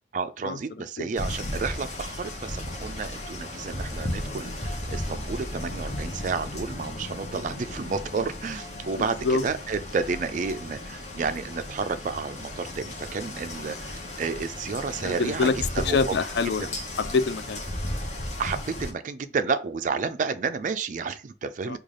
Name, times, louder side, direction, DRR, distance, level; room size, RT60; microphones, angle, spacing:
voice 1, 0.1-15.5 15.8-16.1 16.6-16.7 18.4-21.8, right 5 dB, 45° right, 0.3 m, -31 dB
sound 1, 1.2-18.9, left 1 dB, 40° left, 0.8 m, -35 dB
voice 2, 9.0-9.4 15.0-15.6 15.8-16.6 17.0-17.6 21.7-21.8, left 4 dB, 60° left, 0.4 m, -25 dB
3.2 x 2.4 x 3.7 m
head